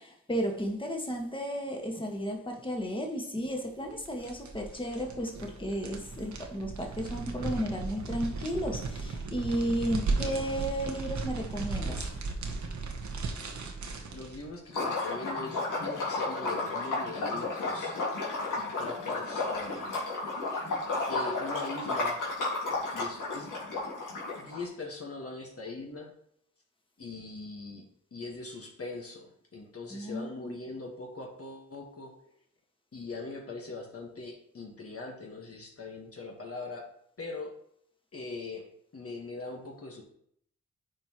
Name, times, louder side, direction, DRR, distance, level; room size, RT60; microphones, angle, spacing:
voice 1, 0.0-12.1 29.9-30.6, equal, 15° left, 1.6 m, -33 dB
sound 1, 3.8-14.5, right 3 dB, 65° right, 1.1 m, -36 dB
voice 2, 14.1-18.0 18.5-20.2 21.1-22.3 22.9-23.5 24.4-26.1 27.0-27.9 28.1-32.1 32.9-36.9 37.2-37.5 38.1-38.6 38.9-40.0, left 3 dB, 50° left, 1.5 m, -41 dB
Liquid, 14.7-24.6, left 3 dB, 85° left, 2.1 m, -33 dB
9.5 x 4.6 x 3.0 m
cardioid pair, 50°, 31 cm